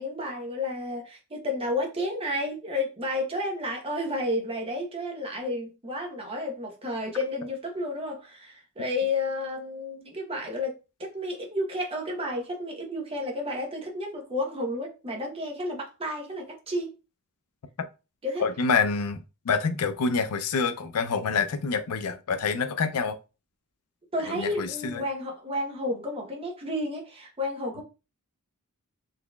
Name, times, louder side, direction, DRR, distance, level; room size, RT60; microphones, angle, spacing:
voice 1, 0.0-16.9 18.2-18.5 24.1-27.8, left 1 dB, 25° right, 0.8 m, -31 dB
voice 2, 18.4-19.2 19.4-23.2 24.3-25.0, left 5 dB, 85° left, 0.5 m, -27 dB
4.0 x 2.9 x 2.3 m
head